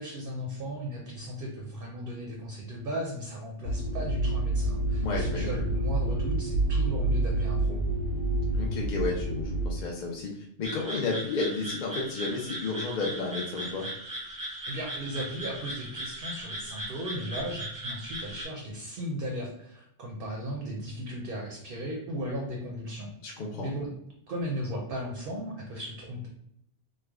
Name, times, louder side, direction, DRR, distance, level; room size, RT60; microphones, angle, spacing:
voice 1, 0.0-7.8 14.7-23.1 23.6-23.9 24.3-26.3, equal, 55° right, 0 dB, 0.7 m, -36 dB
sound 1, 3.6-9.7, right 2 dB, 75° left, 1.1 m, -28 dB
voice 2, 5.0-5.6 8.6-13.9 23.2-23.7, left 3 dB, 55° left, -1 dB, 0.5 m, -32 dB
sound 2, 10.6-18.4, right 1 dB, 20° right, 0.8 m, -38 dB
3.2 x 2.1 x 3.4 m, 0.74 s
omnidirectional pair, 1.2 m